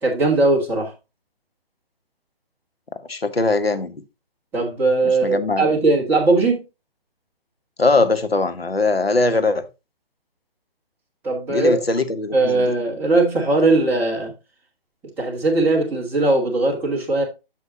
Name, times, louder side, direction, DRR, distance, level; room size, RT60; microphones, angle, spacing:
voice 1, 0.0-0.9 4.5-6.6 11.2-11.8 12.3-14.3 15.2-17.2, right 2 dB, 5° right, 1.5 m, -19 dB
voice 2, 3.1-4.0 5.2-5.7 7.8-9.6 11.5-12.7, left 3 dB, 80° left, 1.2 m, -21 dB
8.5 x 6.6 x 2.7 m
figure-of-eight pair, 140°, 30 cm